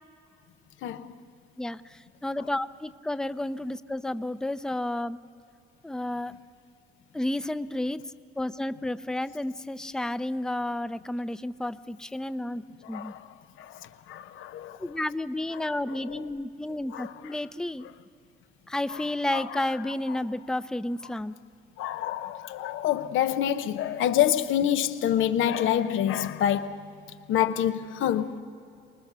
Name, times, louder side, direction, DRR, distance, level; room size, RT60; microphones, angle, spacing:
voice 1, 2.2-5.2 5.8-6.3 7.1-8.0 8.4-13.1 14.8-17.9 18.7-21.3, left 1 dB, 5° left, 0.5 m, -31 dB
voice 2, 14.1-14.8 16.1-16.2 16.9-17.1 18.9-19.0 19.3-19.6 21.8-26.8 27.3-28.3, left 10 dB, 85° left, 0.8 m, -27 dB
24.0 x 20.0 x 6.8 m
cardioid pair, 90°, 20 cm